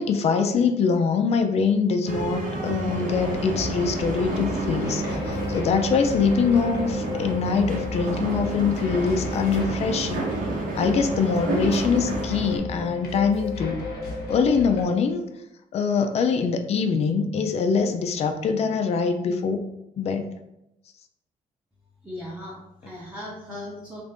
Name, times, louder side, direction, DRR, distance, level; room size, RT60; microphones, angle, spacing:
voice 1, 0.0-10.3 10.7-13.9 14.3-15.2 15.7-19.6 20.0-20.2, left 5 dB, 40° left, 6 dB, 0.4 m, -23 dB
sound 1, 2.0-12.6, right 2 dB, 60° right, 0.7 m, -30 dB
sound 2, 3.1-14.8, left 3 dB, 90° left, 1.0 m, -36 dB
sound 3, 4.8-9.6 9.9-10.0 10.6-15.4, left 4 dB, 30° right, 0.9 m, -37 dB
voice 2, 22.0-24.0, left 1 dB, 5° right, -6 dB, 0.6 m, -38 dB
3.2 x 2.6 x 3.5 m, 0.85 s
cardioid pair, 160°, 16 cm